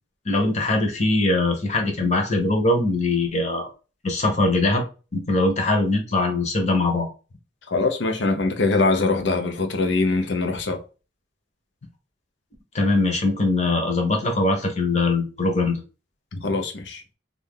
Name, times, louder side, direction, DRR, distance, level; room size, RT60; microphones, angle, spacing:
voice 1, 0.2-3.7 4.0-4.8 5.1-7.1 12.7-15.8, left 2 dB, 40° left, 0.9 m, -21 dB
voice 2, 7.7-10.8 16.3-17.0, left 3 dB, 85° left, 0.7 m, -23 dB
2.7 x 2.6 x 3.5 m
head